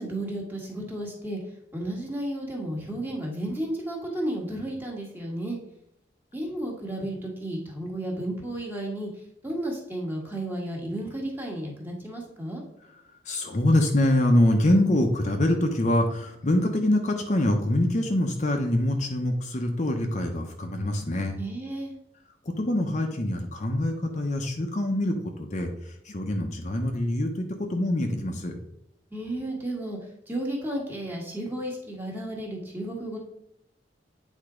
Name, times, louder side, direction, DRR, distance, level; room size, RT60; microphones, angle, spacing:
voice 1, 0.0-1.4 1.7-5.6 6.3-9.1 9.4-12.6 21.4-21.9 29.1-30.0 30.3-33.2, right 1 dB, 10° right, -1 dB, 1.6 m, -33 dB
voice 2, 13.3-21.4 22.5-28.5, left 1 dB, 40° left, 3 dB, 0.8 m, -25 dB
8.7 x 3.6 x 5.0 m, 0.77 s
head